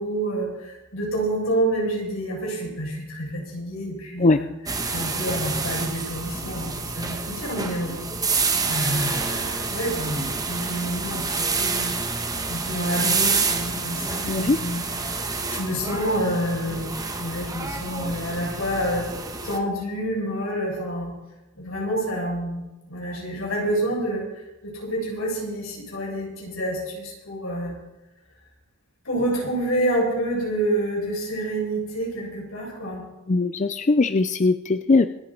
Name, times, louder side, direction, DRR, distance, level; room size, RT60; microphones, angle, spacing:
voice 1, 0.0-4.5 4.8-8.0 8.7-12.0 12.5-19.1 19.4-21.1 21.5-24.2 24.6-27.7 29.0-33.0, right 1 dB, 80° left, -3 dB, 7.4 m, -28 dB
sound 1, 4.7-19.6, right 4 dB, 20° right, 1.3 m, -28 dB
voice 2, 33.3-35.1, left 3 dB, 35° left, 10 dB, 0.5 m, -20 dB
26.5 x 9.1 x 4.4 m, 1.0 s
head